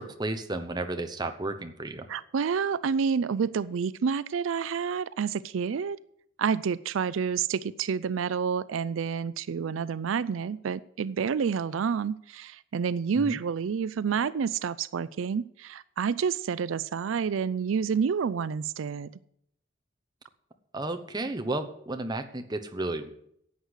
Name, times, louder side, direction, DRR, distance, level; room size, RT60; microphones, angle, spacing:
voice 1, 0.0-2.1 13.1-13.4 20.7-23.1, right 2 dB, 20° right, 7 dB, 0.9 m, -33 dB
voice 2, 2.1-6.0 6.4-19.1, right 6 dB, 80° right, 18 dB, 0.4 m, -29 dB
11.0 x 8.0 x 8.2 m, 0.71 s
head